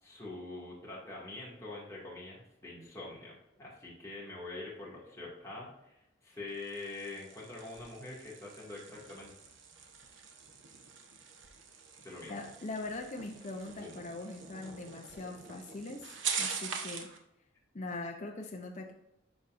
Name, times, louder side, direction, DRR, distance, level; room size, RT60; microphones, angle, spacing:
voice 1, 0.0-9.3 12.0-12.5 13.8-14.0, left 2 dB, 15° left, -6 dB, 2.2 m, -45 dB
sound 1, 6.5-17.2, right 6 dB, 80° right, 1.0 m, -43 dB
voice 2, 12.3-16.1 16.4-17.1 17.7-18.9, left 2 dB, 40° left, 1 dB, 0.7 m, -41 dB
11.5 x 4.2 x 2.6 m, 0.85 s
head